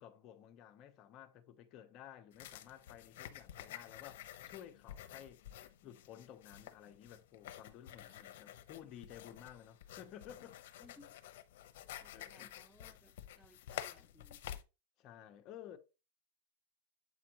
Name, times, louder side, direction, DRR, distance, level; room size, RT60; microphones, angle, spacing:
voice 1, 0.0-5.4 5.8-10.6 12.1-12.6 15.0-15.8, left 10 dB, 35° left, 0.9 m, -54 dB
sound 1, 2.3-14.6, left 11 dB, 65° left, 0.8 m, -50 dB
voice 2, 10.8-11.2 12.0-14.4, left 1 dB, ahead, 0.5 m, -63 dB
7.7 x 5.0 x 3.0 m
supercardioid pair, 160°, 0 cm